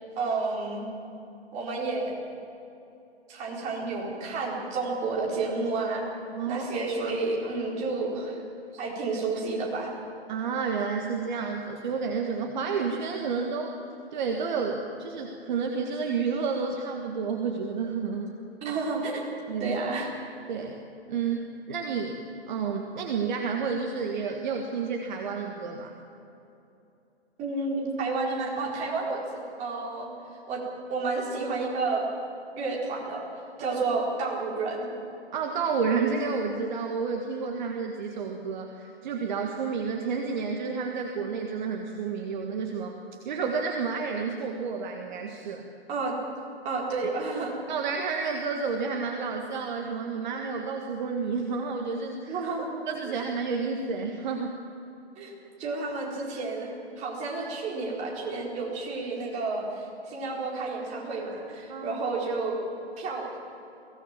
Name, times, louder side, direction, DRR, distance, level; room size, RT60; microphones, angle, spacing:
voice 1, 0.2-0.8 1.5-2.1 3.3-6.0 6.5-8.4 8.7-9.9 18.6-19.2 19.6-20.1 27.4-30.1 30.5-30.6 30.9-32.1 32.5-33.3 33.6-34.9 45.9-46.1 46.6-47.6 52.3-52.7 53.0-53.1 55.2-55.3 55.6-62.6 63.0-63.4, right 3 dB, 20° right, -3 dB, 4.4 m, -30 dB
voice 2, 6.3-6.7 10.3-13.8 14.1-18.4 19.5-19.8 20.5-20.8 21.1-22.2 22.5-25.9 33.6-33.8 35.3-43.0 43.3-45.7 47.7-52.4 52.9-54.6 61.7-62.0, right 5 dB, 45° right, 2 dB, 1.8 m, -30 dB
22.5 x 17.0 x 7.5 m, 2.9 s
figure-of-eight pair, 135°, 32 cm